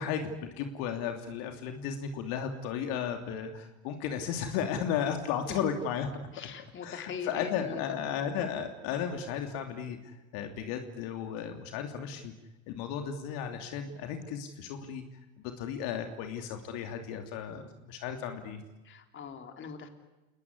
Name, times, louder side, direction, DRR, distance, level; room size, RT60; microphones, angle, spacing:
voice 1, 0.0-6.1 6.8-12.3 12.7-15.0 15.4-18.6, left 8 dB, 50° left, 6 dB, 3.1 m, -34 dB
voice 2, 6.3-8.0 18.8-19.9, left 6 dB, 25° left, 6 dB, 3.7 m, -41 dB
29.5 x 20.0 x 9.9 m, 1.1 s
hypercardioid pair, 105°, 43 cm